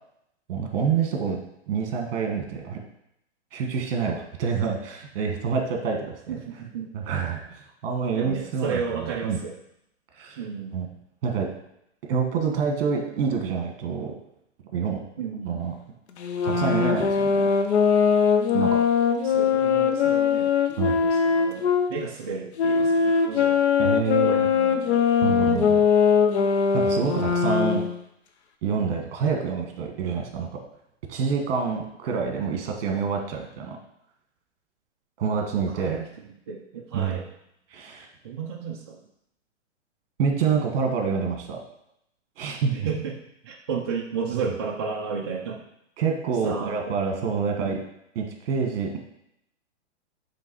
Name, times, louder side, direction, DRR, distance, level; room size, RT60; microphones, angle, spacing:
voice 1, 0.5-1.4 1.7-2.8 3.5-6.4 6.9-9.4 10.1-10.4 10.7-10.9 11.2-11.5 12.1-14.1 14.7-15.0 15.4-15.8 16.4-17.5 18.5-18.8 20.8-21.0 23.8-24.4 25.2-25.8 26.7-27.8 28.6-30.5 31.1-33.8 35.2-36.0 36.9-37.2 37.7-38.1 40.2-41.6 42.4-42.9 46.0-47.8 48.1-49.0, right 6 dB, 50° right, 3 dB, 1.5 m, -27 dB
voice 2, 6.3-6.9 8.1-9.6 10.4-10.8 15.2-15.7 19.2-23.6 24.2-25.5 28.8-29.1 35.7-36.1 36.5-37.3 38.2-39.0 42.7-45.6 46.4-46.9 47.6-47.8, right 5 dB, 25° right, -1 dB, 0.3 m, -33 dB
Sax Alto - F minor, 16.2-21.9 22.6-28.0, left 6 dB, 60° left, 0.9 m, -21 dB
7.2 x 3.3 x 4.6 m, 0.79 s
hypercardioid pair, 140°, 37 cm